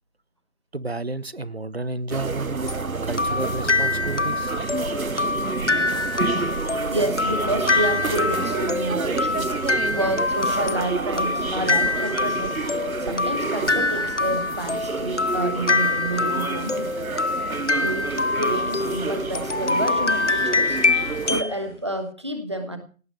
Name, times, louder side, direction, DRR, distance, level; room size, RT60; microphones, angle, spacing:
voice 1, 0.7-2.7 3.0-4.6, right 2 dB, 45° right, 20 dB, 0.9 m, -31 dB
sound 1, 2.1-21.4, right 4 dB, 80° right, 0.9 m, -29 dB
sound 2, 2.7-21.6, left 3 dB, 60° left, 0.9 m, -25 dB
voice 2, 6.9-9.5 9.9-12.6 13.0-17.1 17.7-20.8 21.2-22.8, right 1 dB, 20° right, 8 dB, 1.4 m, -29 dB
sound 3, 12.4-21.8, left 2 dB, 35° left, 3.6 m, -45 dB
18.0 x 10.0 x 6.7 m, 0.38 s
figure-of-eight pair, 165°, 41 cm